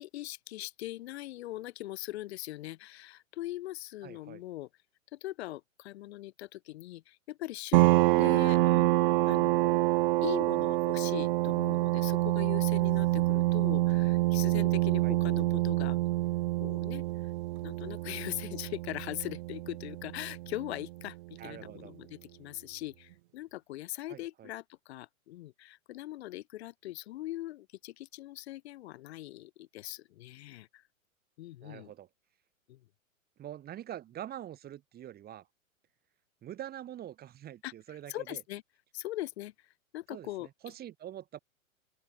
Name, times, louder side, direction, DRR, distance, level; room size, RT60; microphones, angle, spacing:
voice 1, 0.0-4.7 5.1-9.8 10.2-16.0 16.6-17.0 17.6-30.8 31.4-31.9 32.7-32.8 37.6-37.7 38.1-38.6 38.9-39.5 39.9-40.5, left 16 dB, 50° left, 2.5 m, -41 dB
voice 2, 4.0-4.4 15.0-15.2 21.4-21.9 24.1-24.5 31.6-32.1 33.4-35.5 36.4-38.4 40.1-41.4, right 11 dB, 20° right, 3.2 m, -45 dB
sound 1, 7.7-21.0, right 19 dB, 40° right, 0.8 m, -27 dB
open air
figure-of-eight pair, 110°, 42 cm